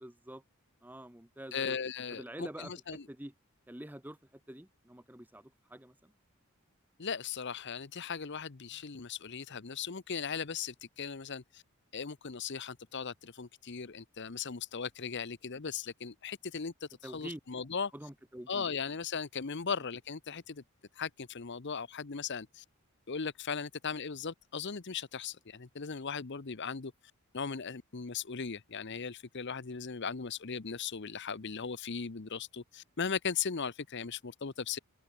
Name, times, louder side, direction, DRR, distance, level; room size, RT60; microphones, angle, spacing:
voice 1, 0.0-0.4 0.8-1.8 2.1-2.7 3.1-3.3 3.7-6.1 17.0-17.4 17.9-18.7, right 1 dB, 10° right, 1.0 m, -46 dB
voice 2, 1.5-3.0 7.0-11.6 11.9-17.9 18.5-20.6 21.0-22.6 23.1-26.9 27.3-34.8, left 6 dB, 50° left, 0.8 m, -38 dB
open air
head